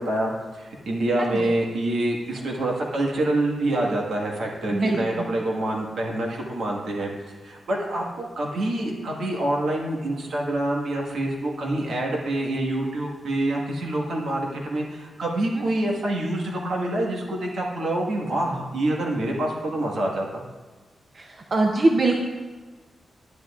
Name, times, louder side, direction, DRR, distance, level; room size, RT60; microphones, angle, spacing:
voice 1, 0.0-20.4, right 1 dB, 80° right, -1 dB, 1.6 m, -26 dB
voice 2, 1.2-1.5 4.7-5.0 21.5-22.2, right 2 dB, 40° right, 2 dB, 0.6 m, -21 dB
10.5 x 10.0 x 2.4 m, 1.3 s
wide cardioid pair, 170°, 0 cm